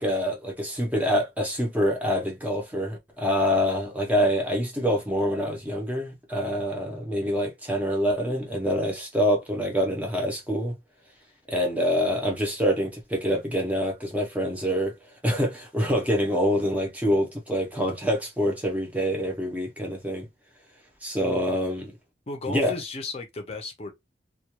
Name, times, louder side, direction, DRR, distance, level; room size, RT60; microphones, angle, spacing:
voice 1, 0.0-10.7 11.5-14.9 15.2-20.3 21.0-21.9 22.5-22.7, equal, 10° right, 0.6 m, -26 dB
voice 2, 22.3-23.9, left 3 dB, 35° left, 0.6 m, -34 dB
2.2 x 2.2 x 2.9 m
head